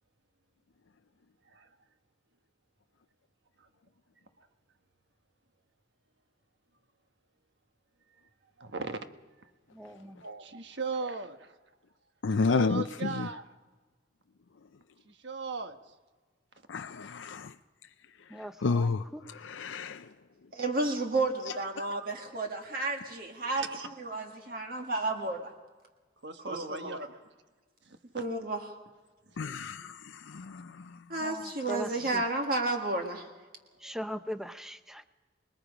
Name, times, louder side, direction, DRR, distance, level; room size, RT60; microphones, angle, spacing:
voice 1, 8.6-9.1 9.4-9.5 10.2-11.6 12.3-13.5 15.0-15.9 23.6-23.9 26.2-27.1 27.8-28.0 29.3-29.4 32.0-32.1 33.8-33.9, right 3 dB, 65° right, 1.3 m, -38 dB
voice 2, 9.7-10.2 18.3-19.2 31.2-32.2 33.8-35.1, equal, ahead, 0.7 m, -40 dB
voice 3, 12.2-13.3 16.7-17.5 18.6-19.0 19.5-20.1 29.4-30.9, left 4 dB, 80° left, 0.5 m, -30 dB
voice 4, 20.5-23.6 24.0-25.5 26.5-27.0 28.1-28.6 31.1-33.3, right 2 dB, 45° right, 1.8 m, -32 dB
26.5 x 20.5 x 5.0 m
head